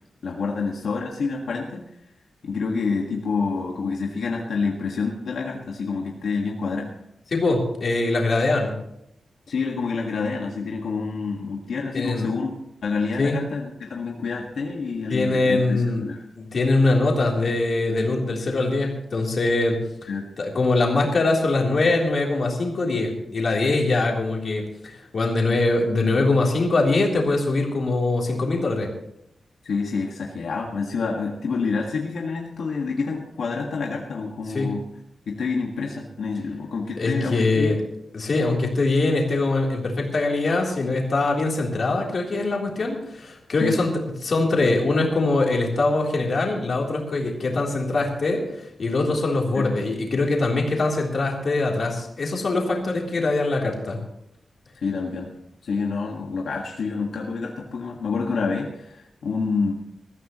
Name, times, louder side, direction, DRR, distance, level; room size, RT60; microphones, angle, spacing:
voice 1, 0.2-1.9 2.4-6.9 9.5-12.5 12.8-16.2 20.1-20.3 29.6-34.9 35.3-37.8 43.6-43.8 49.5-49.7 54.8-55.3 55.6-59.7, left 4 dB, 75° left, -1 dB, 1.7 m, -28 dB
voice 2, 7.3-8.7 11.9-12.3 13.2-13.4 15.1-16.0 16.4-19.8 20.4-28.9 34.5-34.7 37.0-37.8 38.1-43.9 44.2-54.0, left 2 dB, 45° left, -1 dB, 3.5 m, -22 dB
21.5 x 14.0 x 3.1 m, 0.82 s
wide cardioid pair, 170°, 0 cm